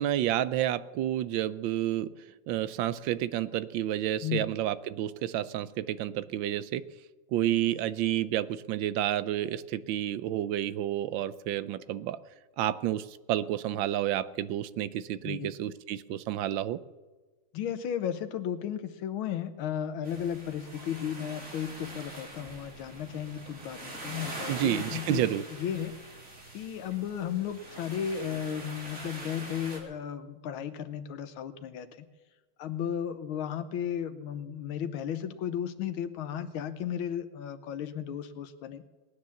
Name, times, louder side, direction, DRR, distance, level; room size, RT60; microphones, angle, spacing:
voice 1, 0.0-2.1 2.5-6.8 7.3-12.2 12.6-16.8 24.5-25.4, right 12 dB, 75° right, 15 dB, 1.3 m, -30 dB
voice 2, 15.2-15.6 17.5-25.2 25.6-25.9 26.5-32.1 32.6-38.9, left 9 dB, 90° left, 10 dB, 1.7 m, -34 dB
sound 1, 20.0-29.8, right 2 dB, 40° right, 3.4 m, -43 dB
19.0 x 9.8 x 7.1 m, 1.3 s
omnidirectional pair, 2.2 m